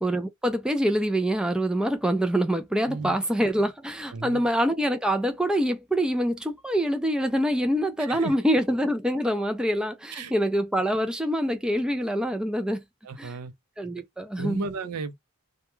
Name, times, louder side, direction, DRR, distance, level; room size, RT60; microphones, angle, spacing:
voice 1, 0.0-12.8 13.2-13.3 13.8-14.6, equal, 5° right, 0.3 m, -25 dB
voice 2, 2.9-3.3 4.1-4.5 8.0-8.3 10.1-10.3 13.0-13.5 14.4-15.2, right 4 dB, 80° right, 0.5 m, -34 dB
2.3 x 2.1 x 2.9 m
head